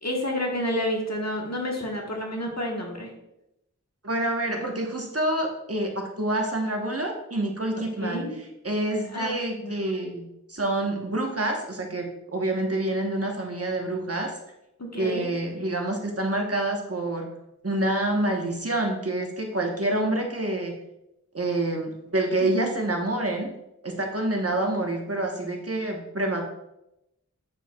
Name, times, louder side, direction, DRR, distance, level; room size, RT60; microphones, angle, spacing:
voice 1, 0.0-3.1 8.0-8.4 9.1-9.8 14.8-15.3 22.4-22.7, equal, 60° left, 0 dB, 1.4 m, -30 dB
voice 2, 4.0-8.3 8.6-14.3 15.0-17.3 17.6-20.7 21.3-23.5 23.8-26.5, right 1 dB, 50° right, 1 dB, 1.1 m, -27 dB
8.8 x 4.7 x 2.3 m, 0.86 s
wide cardioid pair, 40°, 30 cm